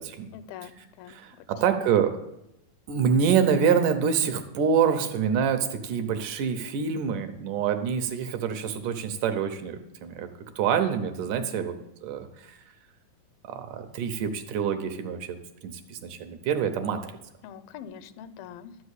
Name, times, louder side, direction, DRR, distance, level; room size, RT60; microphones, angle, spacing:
voice 1, 0.3-1.5 1.8-2.0 11.4-11.7 16.8-17.0 17.4-18.8, left 8 dB, 90° left, 13 dB, 2.4 m, -44 dB
voice 2, 1.1-2.2 2.9-10.3 10.6-11.8 12.0-12.6 13.4-15.4 15.6-17.0, right 7 dB, 75° right, 7 dB, 2.1 m, -26 dB
12.0 x 5.3 x 8.1 m, 0.86 s
omnidirectional pair, 4.1 m